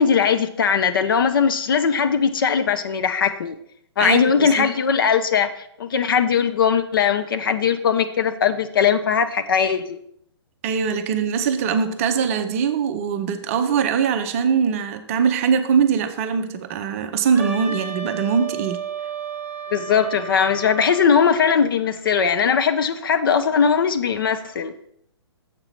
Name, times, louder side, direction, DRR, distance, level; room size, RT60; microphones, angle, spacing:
voice 1, 0.0-3.5 4.0-10.0 19.7-24.7, left 6 dB, 50° left, 9 dB, 0.6 m, -20 dB
voice 2, 4.0-4.7 10.6-18.8, right 6 dB, 30° right, 8 dB, 0.6 m, -22 dB
Wind instrument woodwind instrument, 17.3-21.2, right 7 dB, 10° right, 1.0 m, -32 dB
7.4 x 4.9 x 5.7 m, 0.70 s
figure-of-eight pair, 125°, 15 cm